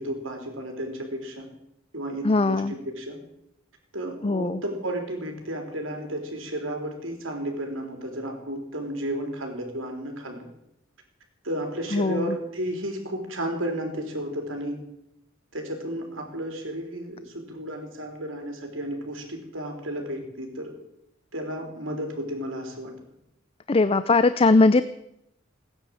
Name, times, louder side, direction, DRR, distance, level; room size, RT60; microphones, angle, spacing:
voice 1, 0.0-1.5 1.9-3.2 3.9-10.5 11.4-14.8 15.5-20.7 21.3-22.9, right 1 dB, 75° right, 3 dB, 4.0 m, -33 dB
voice 2, 2.2-2.7 4.2-4.6 11.9-12.3 23.7-24.8, left 3 dB, 30° left, 13 dB, 0.5 m, -20 dB
18.5 x 10.0 x 7.8 m, 0.82 s
head